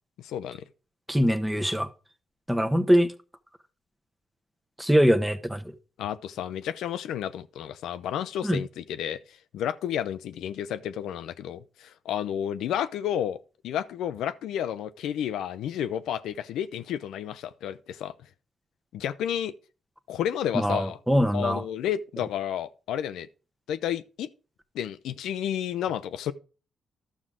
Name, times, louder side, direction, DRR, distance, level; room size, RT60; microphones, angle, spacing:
voice 1, 0.2-0.6 6.0-9.2 9.5-13.4 13.6-18.1 18.9-19.5 20.1-21.0 21.3-23.3 23.7-24.3 24.7-26.3, left 10 dB, 85° left, 0.5 m, -31 dB
voice 2, 1.1-1.9 2.5-3.1 4.8-5.6 8.4-8.6 20.5-21.6, equal, 5° right, 1.0 m, -22 dB
12.0 x 6.1 x 3.7 m
cardioid pair, 75°, 0 cm